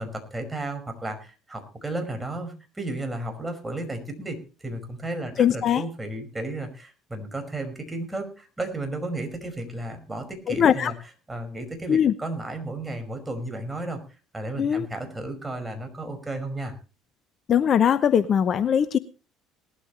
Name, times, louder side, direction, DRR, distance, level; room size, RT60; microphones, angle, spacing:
voice 1, 0.0-10.9 11.3-14.0 14.3-16.7, right 2 dB, 15° right, 5 dB, 5.3 m, -33 dB
voice 2, 5.4-5.8 10.5-10.9 11.9-12.1 14.6-14.9 17.5-19.0, left 8 dB, 45° left, 15 dB, 0.8 m, -20 dB
19.5 x 13.0 x 3.1 m, 0.33 s
hypercardioid pair, 60°, 0 cm